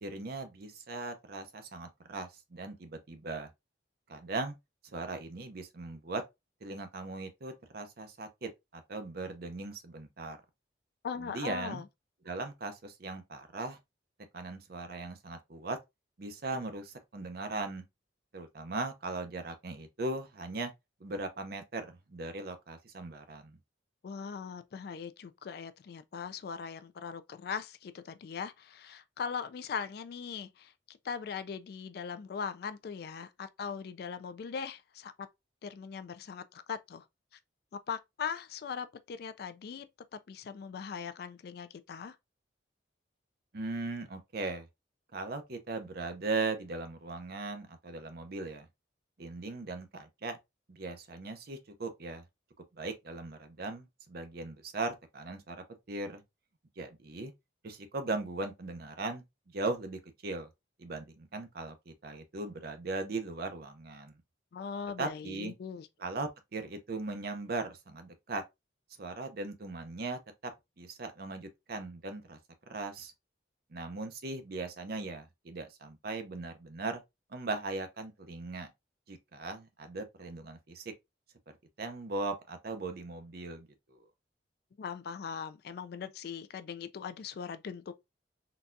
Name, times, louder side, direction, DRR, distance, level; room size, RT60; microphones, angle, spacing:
voice 1, 0.0-3.5 4.1-4.5 4.9-6.2 6.6-10.4 11.2-11.8 12.2-13.8 14.3-15.8 16.2-17.8 18.3-20.7 21.0-23.6 43.5-44.7 45.1-48.7 49.2-50.4 50.7-52.2 52.8-56.2 56.8-57.3 57.6-59.2 59.5-60.5 60.8-64.2 65.0-65.5 66.0-68.4 69.0-70.5 70.8-72.4 72.7-73.1 73.7-77.0 77.3-78.7 79.1-80.8 81.8-84.0, right 3 dB, 50° right, 0.6 m, -38 dB
voice 2, 11.0-11.9 24.0-35.1 35.6-37.0 37.9-39.9 40.1-42.2 64.5-65.9 84.8-87.9, left 6 dB, 55° left, 0.3 m, -40 dB
3.9 x 2.3 x 2.5 m
head